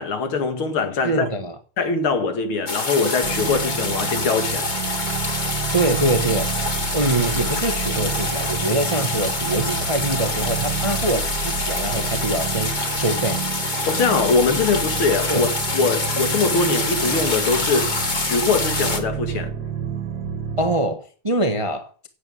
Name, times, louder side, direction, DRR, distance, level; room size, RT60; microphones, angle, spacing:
voice 1, 0.0-1.3 1.8-4.7 13.9-19.5, left 4 dB, 80° left, 2.8 m, -22 dB
voice 2, 1.0-1.5 5.7-6.5 6.9-13.4 15.3-15.5 20.6-22.1, right 2 dB, 25° right, 0.8 m, -24 dB
sound 1, 2.7-19.0, left 3 dB, 25° left, 1.4 m, -26 dB
sound 2, 3.2-20.8, right 7 dB, 55° right, 1.9 m, -30 dB
9.3 x 8.3 x 9.2 m
omnidirectional pair, 2.3 m